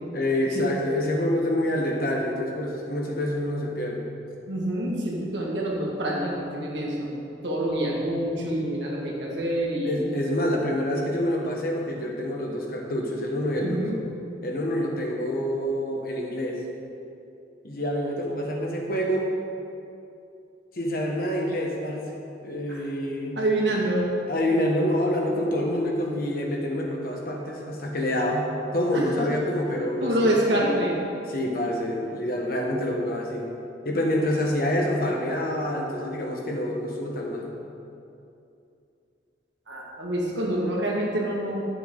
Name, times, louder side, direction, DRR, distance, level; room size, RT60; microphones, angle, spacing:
voice 1, 0.1-4.0 9.8-13.9 14.4-16.6 17.6-19.3 20.7-22.0 22.4-23.4 24.3-30.3 31.3-33.5 33.8-37.5, left 1 dB, 55° left, -1 dB, 1.3 m, -27 dB
voice 2, 4.5-7.2 7.4-10.0 13.6-14.0 22.7-22.8 23.4-24.1 28.9-29.0 29.7-31.0 39.7-41.7, right 1 dB, 90° right, -3 dB, 1.8 m, -26 dB
10.5 x 6.9 x 3.8 m, 2.7 s
head